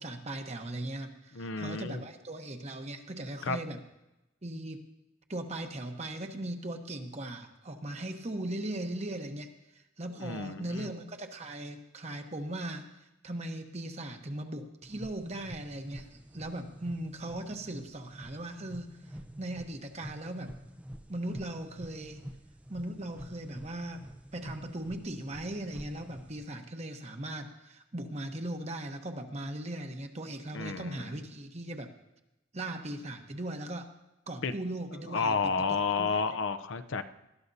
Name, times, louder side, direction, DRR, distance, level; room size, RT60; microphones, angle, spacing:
voice 1, 0.0-3.8 4.4-4.8 5.3-9.5 10.0-12.9 13.2-20.5 21.1-22.2 22.7-24.0 24.3-31.9 32.5-33.9 34.3-36.2, right 1 dB, 35° right, 5 dB, 1.0 m, -38 dB
voice 2, 1.3-2.0 3.4-3.6 10.2-10.9 30.5-31.1 34.4-34.5 35.1-37.0, left 4 dB, 70° left, 9 dB, 0.7 m, -31 dB
sound 1, 14.8-26.5, equal, 5° right, 0.5 m, -48 dB
19.5 x 13.0 x 2.7 m, 0.95 s
head